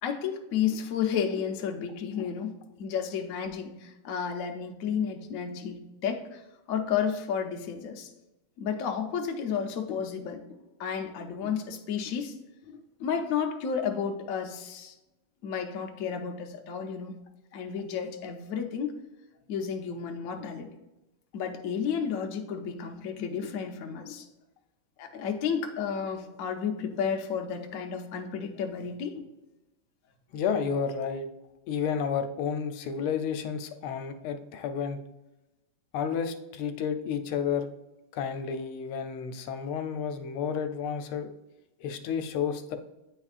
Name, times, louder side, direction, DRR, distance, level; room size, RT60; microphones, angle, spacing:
voice 1, 0.0-2.5 2.8-6.4 6.7-8.1 8.6-12.4 12.7-14.9 15.4-17.1 17.5-18.9 19.5-20.7 21.3-24.3 25.0-29.2, left 7 dB, 70° left, 3 dB, 0.8 m, -32 dB
voice 2, 30.3-31.3 31.7-35.0 35.9-37.7 38.1-41.3 41.8-42.8, left 7 dB, 90° left, 7 dB, 1.5 m, -31 dB
9.2 x 4.4 x 2.4 m, 0.98 s
omnidirectional pair, 2.3 m